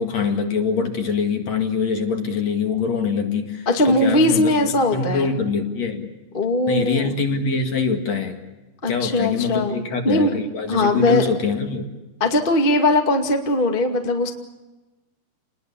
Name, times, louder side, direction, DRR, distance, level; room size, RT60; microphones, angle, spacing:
voice 1, 0.0-6.1 6.7-8.4 8.9-11.9, left 5 dB, 50° left, 4 dB, 2.9 m, -24 dB
voice 2, 3.6-5.3 6.3-7.2 8.8-9.8 10.0-10.3 10.7-11.2 12.2-14.3, left 1 dB, 20° left, 3 dB, 1.5 m, -20 dB
29.5 x 21.0 x 7.1 m, 1.1 s
omnidirectional pair, 4.4 m